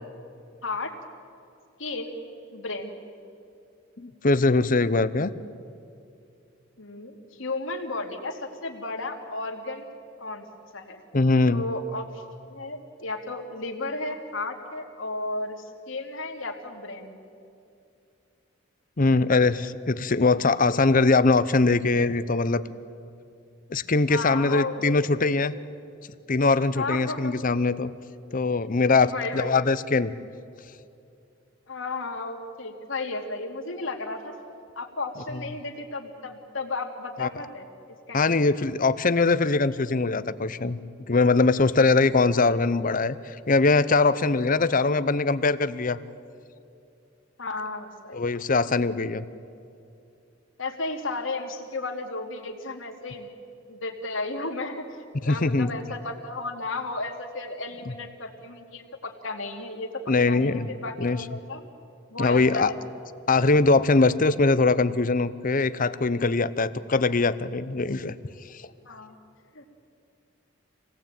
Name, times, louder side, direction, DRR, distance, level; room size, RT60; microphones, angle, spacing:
voice 1, 0.6-0.9 1.8-2.1 2.5-2.9 6.8-9.9 10.2-10.5 10.7-11.0 11.5-12.2 12.5-17.2 24.1-25.0 26.7-27.5 28.6-28.7 29.0-29.5 31.7-34.3 34.8-37.7 38.1-38.5 47.4-48.2 50.6-53.3 53.7-61.6 62.1-62.7 68.9-69.2 69.5-69.7, left 3 dB, 75° left, 3 dB, 2.7 m, -34 dB
voice 2, 4.0-5.3 11.1-11.6 19.0-22.7 23.7-25.5 26.3-27.9 28.3-30.1 35.3-35.4 37.2-37.3 38.1-40.8 41.1-46.0 48.1-49.3 55.2-55.7 57.9-58.0 60.1-60.7 61.0-61.2 62.2-62.7 63.3-68.1, left 3 dB, 45° left, 14 dB, 0.8 m, -22 dB
26.5 x 18.5 x 9.0 m, 2.6 s
head